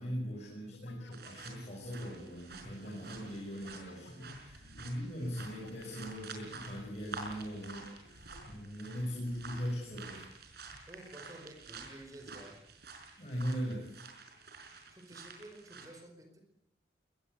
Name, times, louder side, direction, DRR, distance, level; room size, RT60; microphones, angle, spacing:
voice 1, 0.0-10.3 13.2-13.9, equal, 40° left, -3 dB, 6.4 m, -40 dB
sound 1, 0.7-8.8, left 2 dB, 85° left, 2.8 m, -59 dB
sound 2, 1.1-15.9, right 4 dB, 65° right, 5.2 m, -50 dB
voice 2, 10.9-12.6 14.9-16.4, right 1 dB, 20° right, 5 dB, 4.7 m, -51 dB
22.5 x 20.5 x 8.1 m, 0.81 s
head